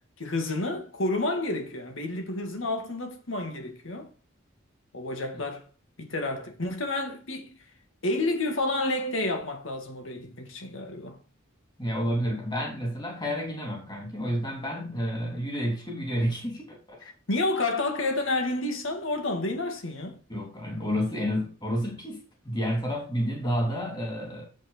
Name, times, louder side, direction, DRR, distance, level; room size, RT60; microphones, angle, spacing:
voice 1, 0.2-4.1 4.9-5.7 6.0-7.6 8.0-11.2 17.0-20.2, left 2 dB, 75° left, 1.8 m, -30 dB
voice 2, 11.8-17.1 20.3-24.5, equal, 20° left, 3.2 m, -30 dB
7.6 x 7.4 x 4.3 m
head